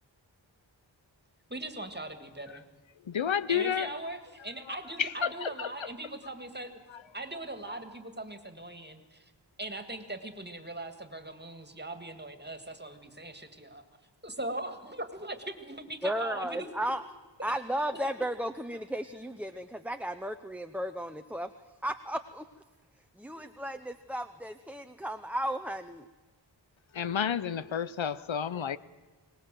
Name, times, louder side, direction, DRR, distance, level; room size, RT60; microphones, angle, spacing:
voice 1, 1.5-2.6 3.5-6.7 7.1-9.3 9.6-13.8 14.2-16.8 17.9-18.1, right 1 dB, 20° right, 8 dB, 2.0 m, -40 dB
voice 2, 3.0-3.9 5.0-5.7 6.9-7.0 26.9-28.8, left 8 dB, 80° left, 16 dB, 0.7 m, -30 dB
voice 3, 16.0-17.0 17.4-21.5 21.8-22.4 23.2-26.1, equal, 5° right, 8 dB, 0.7 m, -34 dB
23.0 x 19.0 x 7.6 m, 1.2 s
wide cardioid pair, 55°, 45 cm